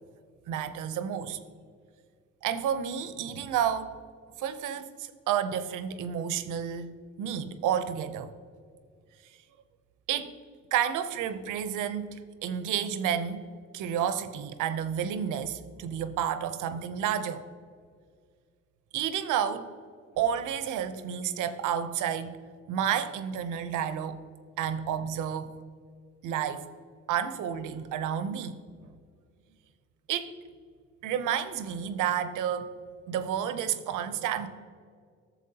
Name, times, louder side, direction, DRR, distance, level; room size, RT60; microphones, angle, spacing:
voice 1, 0.5-1.4 2.4-4.0 4.4-8.3 10.1-10.3 10.7-13.4 13.7-17.4 18.9-19.7 20.2-22.4 22.7-24.2 24.6-25.5 26.2-26.6 27.1-28.6 30.1-30.3 31.0-32.7 33.1-34.5, right 9 dB, 85° right, 0.7 m, -30 dB
12.5 x 7.1 x 2.8 m
cardioid pair, 90°, 30 cm